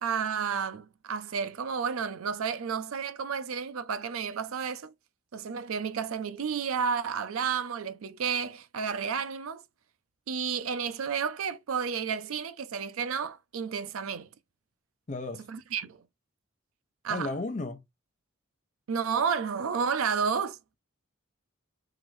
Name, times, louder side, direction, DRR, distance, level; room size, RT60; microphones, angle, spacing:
voice 1, 0.0-4.9 5.3-9.6 10.3-14.3 15.5-16.0 17.0-17.3 18.9-20.6, right 6 dB, 85° right, 0.5 m, -31 dB
voice 2, 15.1-15.5 17.1-17.8, left 2 dB, 35° left, 0.5 m, -33 dB
4.9 x 2.6 x 3.1 m
head